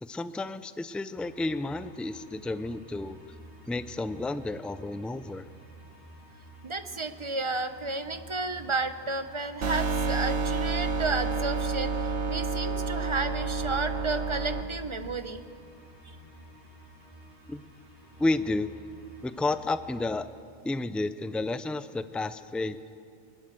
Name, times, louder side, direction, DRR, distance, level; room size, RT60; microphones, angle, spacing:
voice 1, 0.0-3.2 3.7-5.4 17.5-17.6 18.2-18.7 19.2-20.3 20.6-22.8, left 2 dB, ahead, 12 dB, 0.3 m, -31 dB
sound 1, 1.1-20.2, right 1 dB, 20° left, 6.4 m, -51 dB
voice 2, 6.6-15.4 16.1-16.2, right 3 dB, 30° right, 10 dB, 0.9 m, -32 dB
sound 2, 9.6-14.6, right 4 dB, 80° right, 1.4 m, -29 dB
22.5 x 20.5 x 7.7 m, 2.4 s
omnidirectional pair, 1.1 m